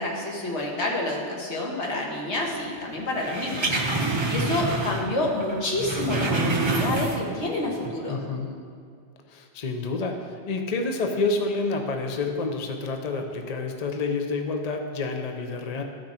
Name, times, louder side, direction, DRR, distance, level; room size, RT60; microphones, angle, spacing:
voice 1, 0.0-8.2, left 1 dB, 70° left, -2 dB, 1.7 m, -28 dB
sound 1, 3.2-5.1 5.4-7.4 7.8-7.9, right 2 dB, 25° right, 0.8 m, -27 dB
voice 2, 4.4-5.0 8.1-8.5 9.3-15.8, left 3 dB, 40° left, 4 dB, 0.7 m, -29 dB
13.0 x 6.1 x 4.3 m, 2.2 s
omnidirectional pair, 1.2 m